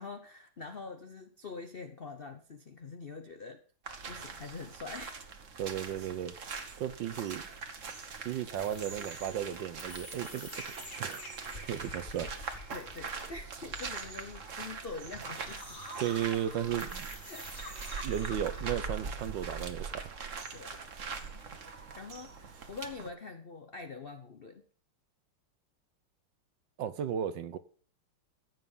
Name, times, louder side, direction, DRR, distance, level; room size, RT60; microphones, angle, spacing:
voice 1, 0.0-3.6 4.1-5.4 12.7-16.2 16.6-16.9 17.3-17.5 20.5-24.6, left 4 dB, 65° left, 0.5 m, -45 dB
sound 1, 3.9-23.1, right 5 dB, 40° right, 1.4 m, -42 dB
voice 2, 5.6-6.3 6.8-7.5 8.2-11.2 11.5-12.3 16.0-17.1 18.0-20.1 26.8-27.6, right 10 dB, 65° right, 1.3 m, -35 dB
sound 2, 8.5-18.8, left 1 dB, 35° left, 4.7 m, -48 dB
15.0 x 7.7 x 5.4 m
omnidirectional pair, 2.4 m